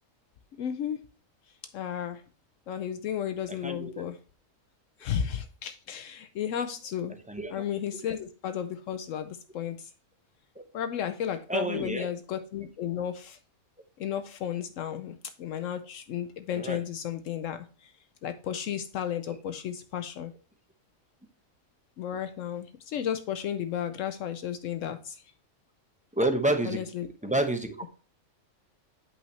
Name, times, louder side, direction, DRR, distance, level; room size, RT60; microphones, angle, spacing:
voice 1, 0.6-1.0 1.7-2.2 2.7-4.2 5.0-7.2 7.5-9.9 10.7-13.4 14.0-17.9 18.2-20.3 22.0-25.2 26.6-27.3, left 9 dB, 80° left, 9 dB, 1.0 m, -33 dB
voice 2, 3.6-3.9 7.3-7.5 10.6-10.7 11.5-12.1 16.5-16.8 26.1-26.8 27.2-27.9, right 1 dB, 5° right, 5 dB, 0.7 m, -28 dB
8.4 x 5.7 x 3.1 m, 0.37 s
omnidirectional pair, 1.3 m